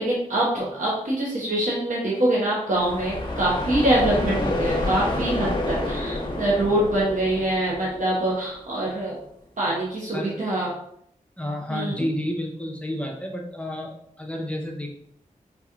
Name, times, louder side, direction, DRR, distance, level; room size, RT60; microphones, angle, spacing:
voice 1, 0.0-9.1 9.6-10.7 11.7-12.1, right 1 dB, 65° right, -5 dB, 0.9 m, -24 dB
sound 1, 2.7-8.5, left 1 dB, 35° left, 0.9 m, -29 dB
voice 2, 11.4-14.9, left 1 dB, 10° left, 0 dB, 0.6 m, -30 dB
3.8 x 2.9 x 2.4 m, 0.70 s
cardioid pair, 45°, 14 cm